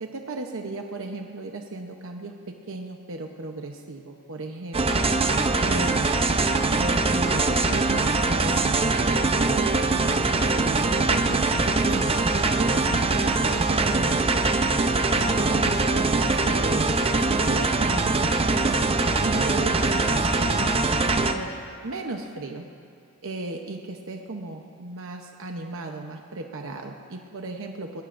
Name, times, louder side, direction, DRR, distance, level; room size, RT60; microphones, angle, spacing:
voice 1, 0.0-5.1 5.6-6.1 6.7-14.5 14.9-18.8 19.2-21.5 21.8-22.7 23.2-28.0, right 2 dB, 65° right, 3 dB, 0.9 m, -36 dB
sound 1, 4.7-21.3, right 3 dB, 25° right, 0.6 m, -22 dB
21.5 x 18.5 x 2.6 m, 2.5 s
head